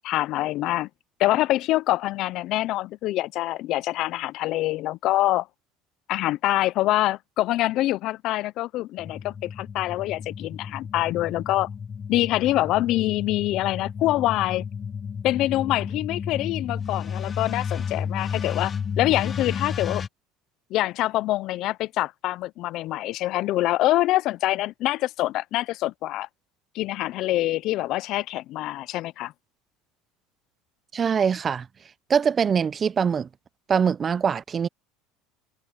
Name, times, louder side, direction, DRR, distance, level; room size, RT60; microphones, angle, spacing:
voice 1, 0.0-0.9 1.2-5.5 6.1-11.7 12.1-14.6 15.2-20.0 20.7-26.3 26.7-29.3, left 16 dB, 60° left, 0.6 m, -25 dB
sound 1, 9.0-20.1, left 6 dB, 30° left, 1.0 m, -32 dB
voice 2, 30.9-31.7 32.1-33.3 33.7-34.7, right 7 dB, 30° right, 0.6 m, -23 dB
supercardioid pair, 115°, 0 cm